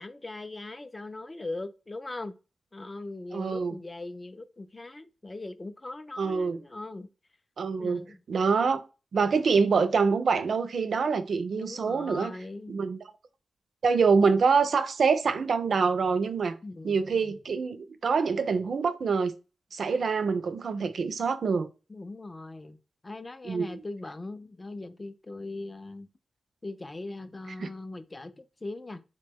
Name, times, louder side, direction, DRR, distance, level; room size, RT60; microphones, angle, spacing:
voice 1, 0.0-2.3 2.7-7.1 7.8-8.2 11.5-12.7 16.6-17.4 21.9-22.8 23.0-26.1 26.6-29.0, left 2 dB, 25° left, 0.3 m, -40 dB
voice 2, 3.3-3.7 6.2-6.6 7.6-8.0 8.3-8.8 9.1-12.3 12.7-13.0 13.8-16.5 16.8-19.3 19.7-21.7 23.4-23.8 27.6-27.7, right 5 dB, 65° right, 0.4 m, -25 dB
2.8 x 2.1 x 3.4 m
cardioid pair, 85°, 0 cm